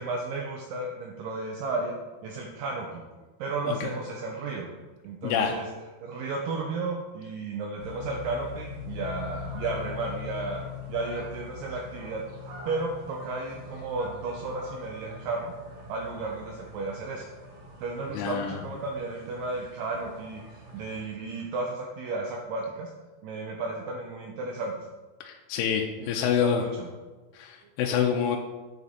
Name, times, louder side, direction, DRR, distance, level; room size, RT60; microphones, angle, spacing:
voice 1, 0.0-2.0 2.2-3.0 3.4-4.7 5.0-5.7 6.0-10.6 10.9-12.2 12.7-15.5 15.9-17.2 17.8-22.9 23.2-24.9 26.0-26.9, right 3 dB, 85° right, 0 dB, 1.9 m, -33 dB
voice 2, 5.2-5.5 18.1-18.6 25.2-26.6 27.3-28.4, left 8 dB, 85° left, 2 dB, 2.6 m, -27 dB
sound 1, 7.8-21.0, left 4 dB, 60° right, 1.8 m, -42 dB
7.8 x 5.0 x 4.1 m, 1.3 s
omnidirectional pair, 4.8 m